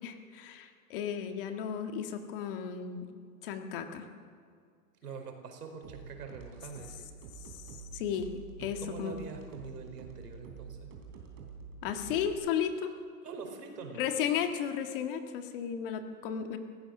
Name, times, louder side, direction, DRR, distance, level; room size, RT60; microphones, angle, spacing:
voice 1, 0.0-3.0 3.4-4.1 7.4-9.2 11.8-12.9 14.0-16.6, left 8 dB, 35° left, 6 dB, 1.7 m, -34 dB
voice 2, 5.0-7.1 8.6-10.9 13.2-14.1, right 5 dB, 80° right, 4 dB, 4.8 m, -44 dB
sound 1, 5.8-12.3, right 5 dB, 30° right, 3.4 m, -48 dB
29.0 x 16.0 x 6.7 m, 2.2 s
hypercardioid pair, 165°, 46 cm